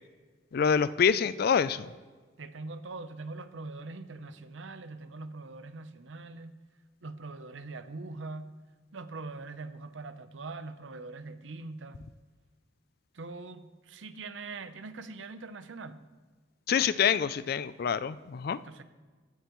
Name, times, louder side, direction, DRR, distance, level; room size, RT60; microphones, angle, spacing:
voice 1, 0.5-1.9 16.7-18.6, left 7 dB, 55° left, 16 dB, 0.4 m, -26 dB
voice 2, 2.4-6.6 7.0-8.5 8.9-12.0 13.1-16.0 18.5-18.8, right 3 dB, 75° right, 11 dB, 0.7 m, -42 dB
15.5 x 10.0 x 3.1 m, 1.4 s
head